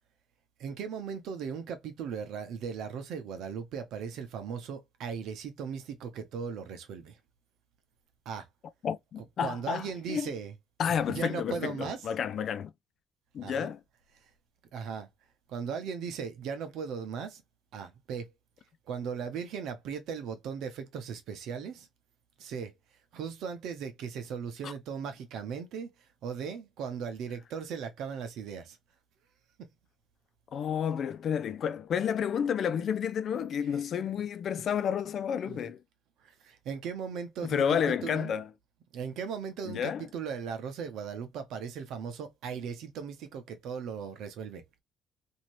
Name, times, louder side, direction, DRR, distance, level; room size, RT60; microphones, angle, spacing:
voice 1, 0.6-7.2 8.3-8.5 9.4-10.5 11.1-12.0 13.4-13.7 14.7-15.1 15.5-17.4 17.7-18.3 18.9-21.9 22.4-22.7 23.1-25.9 26.2-28.8 35.5-35.6 36.2-38.3 38.9-44.6, right 6 dB, 70° right, 0.7 m, -37 dB
voice 2, 8.8-10.3 10.8-12.7 13.3-13.8 24.6-24.7 30.5-35.8 37.4-38.5 39.7-40.1, left 8 dB, 60° left, 0.3 m, -30 dB
2.7 x 2.7 x 3.0 m
hypercardioid pair, 55°, 0 cm